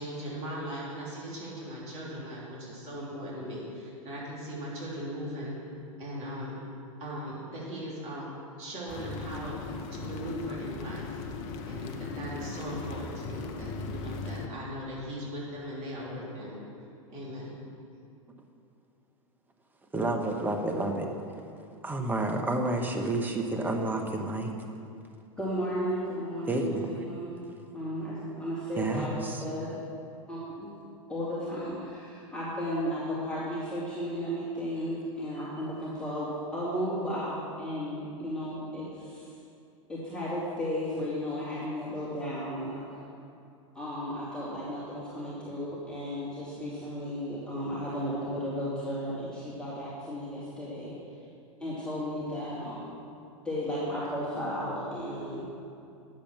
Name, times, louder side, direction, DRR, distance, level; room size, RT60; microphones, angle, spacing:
voice 1, 0.0-5.5 6.0-6.6 7.0-8.3 8.6-9.6 9.9-11.2 11.7-16.6 17.1-17.6, equal, 40° right, -5 dB, 3.1 m, -39 dB
sound 1, 8.9-14.5, left 4 dB, 45° left, 0.9 m, -38 dB
voice 2, 19.9-21.1 21.8-24.5 26.5-26.9 28.8-29.4 41.0-41.1, right 2 dB, 10° right, 2 dB, 1.2 m, -30 dB
voice 3, 25.4-27.4 27.7-29.8 30.3-30.7 31.1-39.3 39.9-42.8 43.7-50.9 51.6-52.9 53.4-55.4, equal, 5° left, -10 dB, 2.7 m, -34 dB
10.5 x 7.6 x 6.1 m, 2.6 s
figure-of-eight pair, 95°, 17 cm